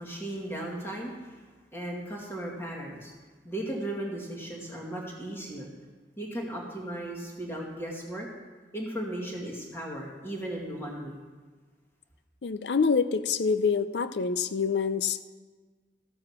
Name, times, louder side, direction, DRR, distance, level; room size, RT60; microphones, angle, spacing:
voice 1, 0.0-1.4 1.7-3.1 3.4-5.7 6.2-8.3 8.7-11.2, right 1 dB, 15° left, -3 dB, 2.2 m, -36 dB
voice 2, 12.4-15.2, left 5 dB, 70° left, 12 dB, 0.5 m, -26 dB
14.0 x 7.7 x 6.0 m, 1.4 s
head